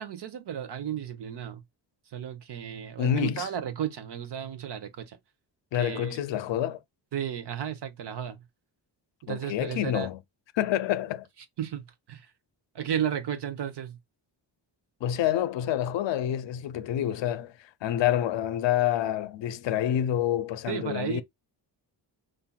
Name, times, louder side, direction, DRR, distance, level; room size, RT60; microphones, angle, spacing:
voice 1, 0.0-1.6 2.1-5.2 5.7-6.2 7.1-8.4 9.2-10.1 11.6-12.3 12.7-14.0 20.7-21.2, right 9 dB, 60° right, 0.8 m, -33 dB
voice 2, 3.0-3.5 5.7-6.8 9.3-10.2 10.5-11.3 15.0-21.2, left 11 dB, 75° left, 0.5 m, -28 dB
5.5 x 2.6 x 2.2 m
wide cardioid pair, 130°, 45 cm